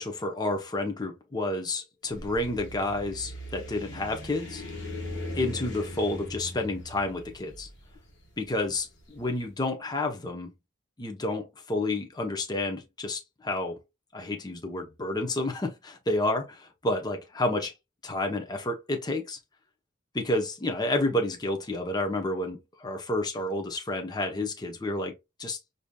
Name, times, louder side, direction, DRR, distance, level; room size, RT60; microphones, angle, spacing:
voice 1, 0.0-4.6 5.3-7.7 8.4-10.5 11.0-13.8 14.1-17.7 18.0-19.4 20.1-25.6, left 2 dB, 20° left, 0.7 m, -30 dB
sound 1, 2.0-9.2, left 1 dB, 65° left, 1.2 m, -40 dB
4.8 x 2.7 x 2.2 m
head